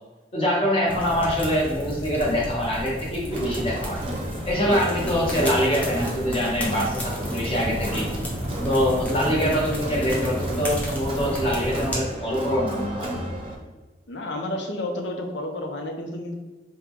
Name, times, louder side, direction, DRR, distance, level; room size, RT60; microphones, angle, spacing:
voice 1, 0.3-4.0 4.5-8.1 8.6-13.1, equal, 30° left, -3 dB, 1.1 m, -24 dB
sound 1, 0.9-12.0, equal, 10° left, 0.8 m, -32 dB
Crowd, 3.3-13.5, equal, 30° right, 0.7 m, -33 dB
voice 2, 14.1-16.3, left 1 dB, 85° left, 3 dB, 0.7 m, -31 dB
3.7 x 2.2 x 4.5 m, 1.3 s
head